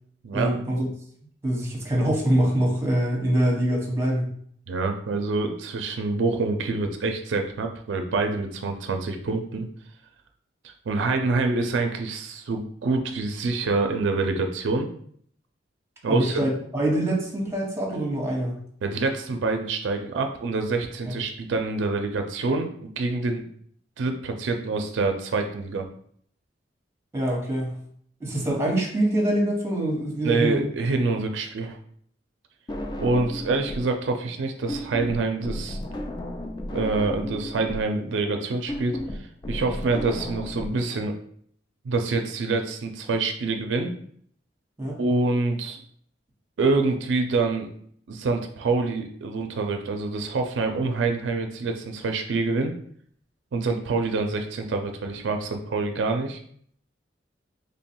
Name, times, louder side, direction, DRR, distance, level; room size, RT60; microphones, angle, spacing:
voice 1, 0.3-0.9 1.4-4.3 16.1-18.5 21.1-21.2 27.1-27.7 28.2-30.7 31.0-31.1 44.8-45.0, right 1 dB, 15° right, -2 dB, 1.0 m, -24 dB
voice 2, 4.7-9.7 10.6-14.9 16.0-16.4 18.8-23.4 24.0-25.9 30.2-31.8 33.0-35.8 36.7-41.1 41.8-43.9 45.0-45.8 46.6-47.7 48.1-52.7 53.5-56.4, right 3 dB, 85° right, 5 dB, 0.4 m, -26 dB
sound 1, 32.7-33.9 34.2-40.7, left 1 dB, 25° left, 0.4 m, -33 dB
3.1 x 2.2 x 4.3 m, 0.63 s
head